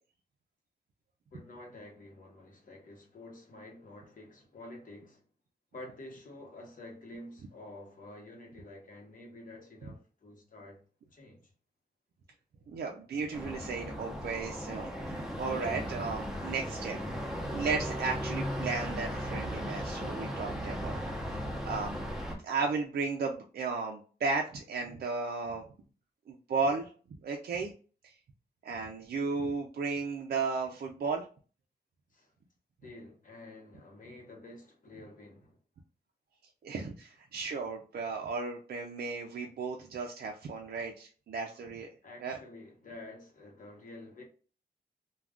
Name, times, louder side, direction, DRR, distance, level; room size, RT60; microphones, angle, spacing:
voice 1, 1.3-5.2 5.7-10.8 11.1-11.5 32.1-32.3 32.8-35.6 36.8-36.9 42.0-44.2, left 2 dB, 50° left, 0.9 m, -49 dB
voice 2, 12.7-17.0 17.5-21.0 21.3-22.0 22.4-25.6 26.3-26.9 27.2-27.7 28.0-28.1 28.6-31.2 36.6-41.9 42.2-42.4, right 4 dB, 65° right, 0.4 m, -34 dB
sound 1, 13.3-22.3, equal, 5° right, 0.7 m, -37 dB
2.4 x 2.2 x 3.4 m
wide cardioid pair, 120°, 17 cm